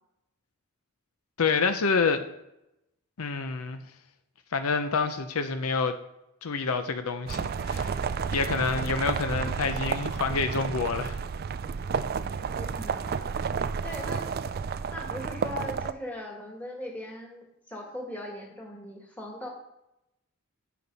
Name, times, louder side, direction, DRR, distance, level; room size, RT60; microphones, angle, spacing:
voice 1, 1.4-2.3 3.2-3.8 4.5-6.0 6.4-8.0 8.3-11.2, left 4 dB, 80° left, 0.6 m, -27 dB
sound 1, 7.3-15.9, right 6 dB, 45° right, 0.3 m, -31 dB
voice 2, 12.5-13.2 13.8-19.5, left 1 dB, 5° left, 1.8 m, -40 dB
8.5 x 6.0 x 5.4 m
head